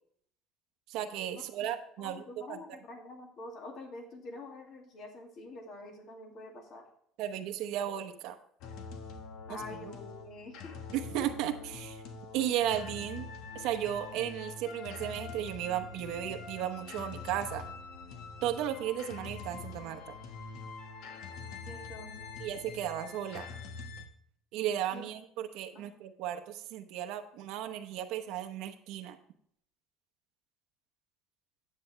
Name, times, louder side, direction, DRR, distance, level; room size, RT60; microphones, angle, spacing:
voice 1, 0.9-2.8 7.2-8.4 9.5-9.6 10.9-12.0 12.3-13.3 13.5-17.6 18.4-20.1 22.4-23.5 24.5-29.2, right 11 dB, 70° right, 6 dB, 0.9 m, -35 dB
voice 2, 2.0-6.9 9.5-10.7 21.7-22.3 24.9-25.1 25.7-25.9, left 2 dB, 45° left, 3 dB, 2.2 m, -46 dB
sound 1, 8.6-24.1, left 4 dB, 70° left, 1.3 m, -45 dB
10.0 x 8.5 x 3.2 m, 0.67 s
cardioid pair, 145°, 0 cm